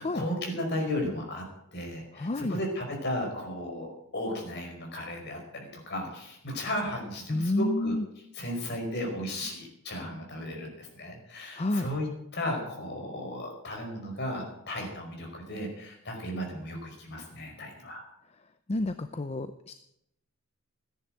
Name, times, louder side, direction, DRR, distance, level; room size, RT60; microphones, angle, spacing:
voice 1, 0.0-1.4 1.7-3.9 4.1-8.0 8.4-12.1 12.3-18.0, left 1 dB, 50° left, 1 dB, 5.0 m, -35 dB
voice 2, 2.1-2.6 7.3-8.1 11.6-11.9 18.7-19.7, left 1 dB, 30° left, 10 dB, 0.6 m, -29 dB
15.0 x 10.5 x 7.7 m, 0.77 s
head